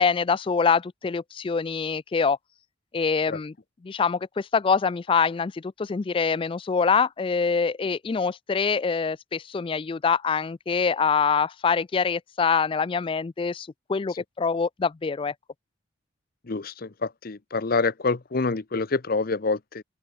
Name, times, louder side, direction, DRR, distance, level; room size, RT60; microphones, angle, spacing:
voice 1, 0.0-2.4 2.9-3.5 3.8-15.3, left 5 dB, 25° left, 0.3 m, -25 dB
voice 2, 16.4-19.8, left 3 dB, 50° left, 0.8 m, -27 dB
open air
head